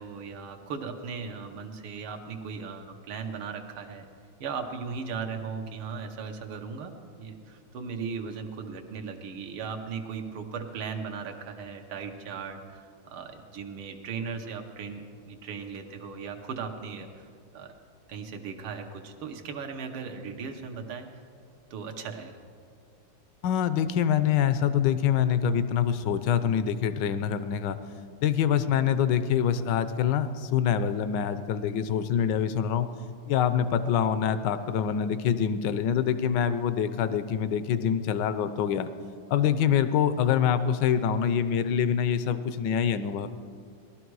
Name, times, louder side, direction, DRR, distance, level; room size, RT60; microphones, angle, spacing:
voice 1, 0.0-4.1 4.4-6.9 7.2-17.7 18.1-21.1 21.7-22.4, right 5 dB, 75° right, 4 dB, 1.9 m, -37 dB
voice 2, 23.4-27.8 28.2-32.9 33.3-38.9 39.3-43.3, left 8 dB, 70° left, 12 dB, 1.1 m, -25 dB
18.5 x 12.5 x 4.7 m, 2.2 s
omnidirectional pair, 2.3 m